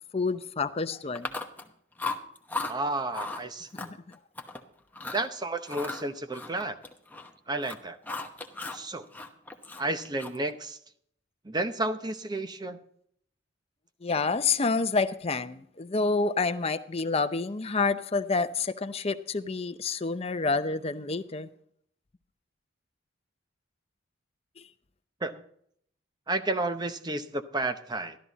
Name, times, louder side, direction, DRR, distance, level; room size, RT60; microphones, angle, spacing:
voice 1, 0.1-1.3 3.7-4.0 14.0-21.5 24.6-24.7, left 4 dB, 30° left, 0.6 m, -28 dB
Chewing mastication, 1.2-1.7 2.0-2.7 3.1-3.4 3.8-4.6 4.9-5.3 5.7-7.3 7.6-8.8 9.1-10.5, left 3 dB, 10° left, 1.0 m, -36 dB
voice 2, 2.7-3.9 5.1-6.8 7.5-8.0 8.7-9.1 9.8-10.8 11.4-12.8 25.2-25.4 26.3-28.2, right 2 dB, 20° right, 0.8 m, -31 dB
13.0 x 12.5 x 4.0 m
head